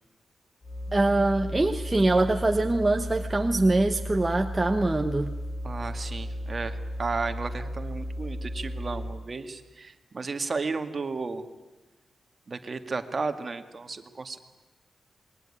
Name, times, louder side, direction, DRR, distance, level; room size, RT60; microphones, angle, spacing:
sound 1, 0.6-9.3, equal, 25° left, 5.7 m, -35 dB
voice 1, 0.9-5.3, right 2 dB, 20° right, 5 dB, 1.2 m, -23 dB
voice 2, 5.6-11.4 12.5-14.4, right 4 dB, 35° right, 8 dB, 2.1 m, -33 dB
27.0 x 21.5 x 9.9 m, 1.2 s
wide cardioid pair, 120°, 0 cm